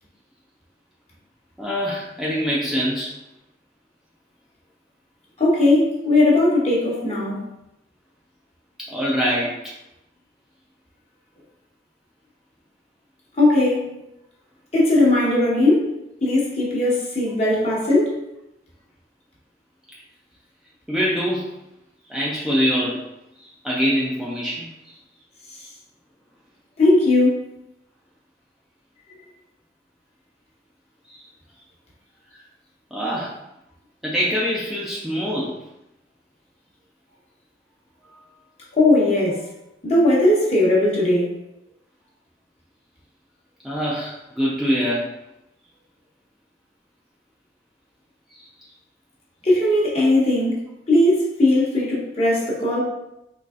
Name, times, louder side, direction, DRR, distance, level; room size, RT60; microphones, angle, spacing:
voice 1, 1.6-3.1 8.8-9.7 20.9-21.5 22.1-23.0 23.4-24.7 31.1-31.2 32.9-33.4 34.0-35.5 43.6-45.2 48.3-48.5, equal, ahead, -7 dB, 0.5 m, -24 dB
voice 2, 5.4-7.4 13.4-13.9 14.7-15.9 16.2-18.1 26.8-27.5 38.8-39.4 39.8-41.4 49.4-50.6 50.9-52.8, left 2 dB, 40° left, -5 dB, 1.1 m, -18 dB
3.9 x 3.1 x 2.4 m, 0.87 s
head